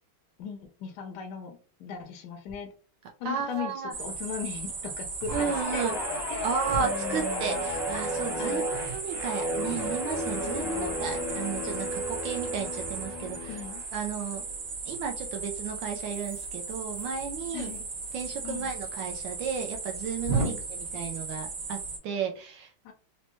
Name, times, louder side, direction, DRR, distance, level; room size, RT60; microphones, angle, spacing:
voice 1, 0.4-2.7 3.2-5.9 6.3-6.5 6.8-7.6 8.4-8.7 10.6-11.0 13.5-13.8 17.5-17.9 18.4-18.7 20.3-20.6 22.8-22.9, left 7 dB, 80° left, 5 dB, 0.9 m, -38 dB
sound 1, 2.5-2.6 3.0-3.1 3.4-3.7 4.6-4.8 5.2-5.4 5.8-5.9 6.7-7.6 8.1-10.4 10.9-11.7 13.3-13.6 14.9-15.2 16.0-18.8 19.1-19.2 19.5-19.6 20.2-20.5, right 2 dB, 40° right, 1.0 m, -38 dB
voice 2, 3.2-3.9 5.3-6.0 6.4-13.6 13.9-14.4 14.9-17.7 18.1-21.8 22.0-22.9, right 6 dB, 75° right, 3 dB, 1.1 m, -33 dB
sound 2, 3.9-22.0, right 4 dB, 60° right, 1.4 m, -37 dB
Guitar, 5.3-13.9 14.3-14.6, equal, 30° left, 0.4 m, -33 dB
4.1 x 2.1 x 3.0 m, 0.39 s
omnidirectional pair, 2.4 m